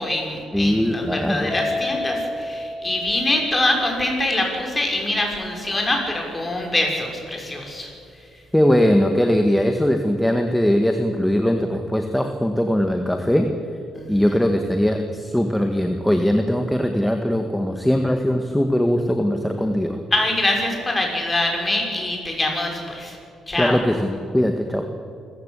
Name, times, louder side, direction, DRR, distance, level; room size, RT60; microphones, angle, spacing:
voice 1, 0.0-7.9 13.9-14.1 20.1-23.2 23.5-23.8, left 1 dB, 20° left, 1 dB, 6.2 m, -24 dB
voice 2, 0.5-1.5 8.5-13.5 14.1-20.0 23.6-24.8, equal, 5° left, 5 dB, 1.7 m, -20 dB
Mallet percussion, 1.5-4.0, left 2 dB, 40° left, 1.9 m, -30 dB
26.5 x 15.0 x 8.4 m, 2.5 s
cardioid pair, 90°, 0 cm